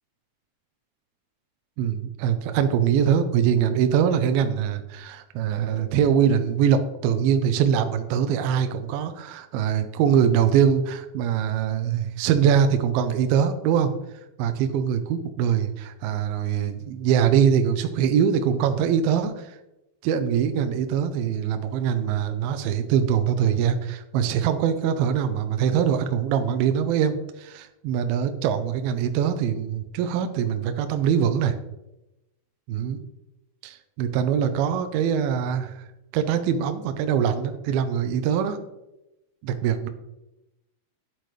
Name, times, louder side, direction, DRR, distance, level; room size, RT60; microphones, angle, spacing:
voice 1, 1.8-13.9 14.4-19.6 20.0-31.5 32.7-33.0 33.6-35.9 36.1-38.6 39.4-39.9, right 8 dB, 80° right, 8 dB, 2.2 m, -23 dB
11.0 x 8.0 x 3.2 m, 0.92 s
omnidirectional pair, 4.9 m